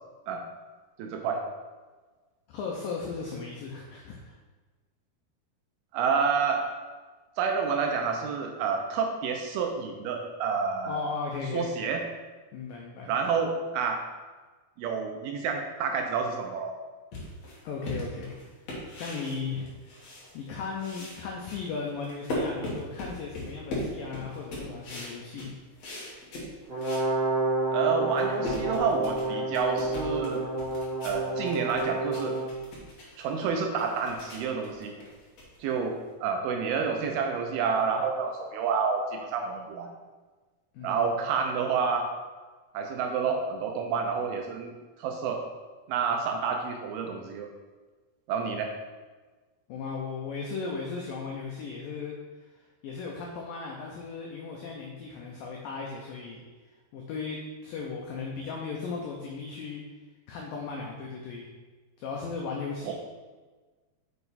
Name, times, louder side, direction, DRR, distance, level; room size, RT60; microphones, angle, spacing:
voice 1, 1.0-1.4 5.9-6.7 7.4-11.0 11.5-12.0 13.1-14.0 14.8-16.7 27.7-30.4 31.0-32.4 33.2-34.9 35.6-39.9 40.8-42.1 42.7-44.7 45.0-45.4 45.9-47.5 48.3-48.7 62.9-63.0, right 5 dB, 80° right, 2 dB, 2.3 m, -29 dB
voice 2, 2.5-4.3 10.9-11.7 12.5-13.1 17.6-18.3 19.0-20.0 20.3-25.5 40.7-41.1 49.7-52.1 52.8-56.4 56.9-59.8 60.3-61.5 62.0-62.9, left 4 dB, 80° left, -1 dB, 2.0 m, -36 dB
sound 1, 17.1-20.5 20.8-27.1 27.5-27.6 28.0-36.1, left 1 dB, 50° left, 2.2 m, -39 dB
Brass instrument, 26.7-32.5, right 2 dB, 55° right, 0.8 m, -29 dB
7.0 x 5.6 x 4.1 m, 1.3 s
omnidirectional pair, 5.0 m